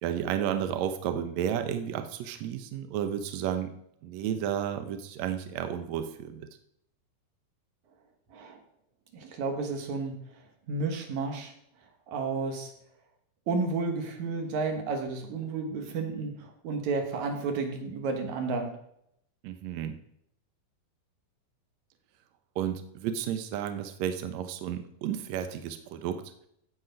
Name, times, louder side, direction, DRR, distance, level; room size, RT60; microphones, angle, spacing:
voice 1, 0.0-3.7 4.0-6.5 19.4-20.0 22.6-26.2, right 9 dB, 80° right, 7 dB, 1.5 m, -32 dB
voice 2, 9.1-11.5 12.1-12.7 13.5-18.8, right 4 dB, 60° right, 4 dB, 2.6 m, -32 dB
15.5 x 5.3 x 5.2 m, 0.72 s
omnidirectional pair, 4.1 m